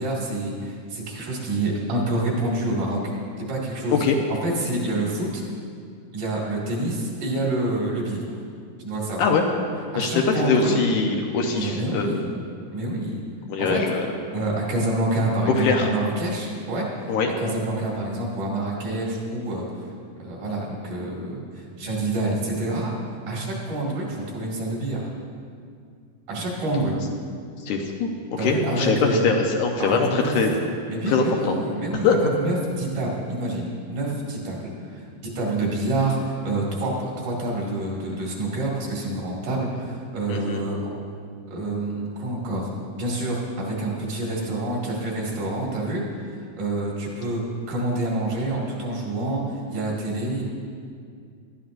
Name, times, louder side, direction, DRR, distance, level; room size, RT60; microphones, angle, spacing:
voice 1, 0.0-3.0 3.4-4.1 4.4-5.4 6.1-8.3 8.8-9.3 9.9-10.8 11.5-12.3 12.7-13.2 13.6-13.8 14.3-17.1 17.4-19.6 20.2-22.9 23.3-25.1 26.3-27.0 28.4-29.2 29.8-30.3 30.9-32.1 32.3-40.8 41.5-42.7 43.0-46.0 46.6-50.4, right 2 dB, 70° right, -4 dB, 3.6 m, -27 dB
voice 2, 10.0-12.3 13.5-14.1 15.6-15.9 17.1-17.3 27.7-28.1 28.4-29.0 29.2-30.5 31.1-31.5 32.0-32.2 40.3-40.7, left 5 dB, 75° left, 1 dB, 2.2 m, -22 dB
18.5 x 12.5 x 2.6 m, 2.2 s
omnidirectional pair, 3.9 m